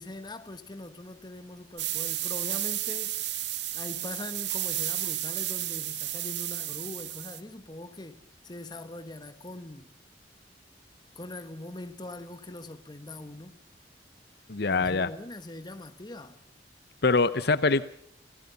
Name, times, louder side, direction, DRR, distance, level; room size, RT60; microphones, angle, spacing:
voice 1, 0.0-3.2 3.7-9.9 11.1-13.6 14.7-16.4, left 2 dB, 25° left, 1.4 m, -42 dB
sound 1, 1.8-7.4, right 13 dB, 75° right, 1.7 m, -32 dB
voice 2, 14.5-15.1 17.0-17.9, left 3 dB, 60° left, 0.8 m, -24 dB
27.0 x 17.0 x 7.0 m
head